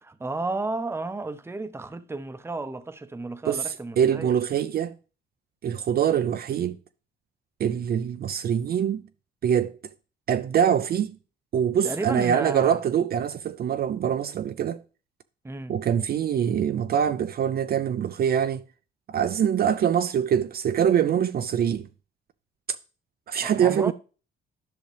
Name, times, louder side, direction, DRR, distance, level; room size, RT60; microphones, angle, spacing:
voice 1, 0.0-4.3 11.8-12.8 15.4-15.8 23.4-23.9, right 3 dB, 10° right, 0.7 m, -32 dB
voice 2, 4.0-5.0 5.6-6.8 7.6-9.0 9.4-9.8 10.3-11.2 11.5-14.8 15.7-18.6 19.1-21.9 23.3-23.9, right 8 dB, 50° right, 0.4 m, -24 dB
10.5 x 5.8 x 3.3 m
cardioid pair, 90°, 20 cm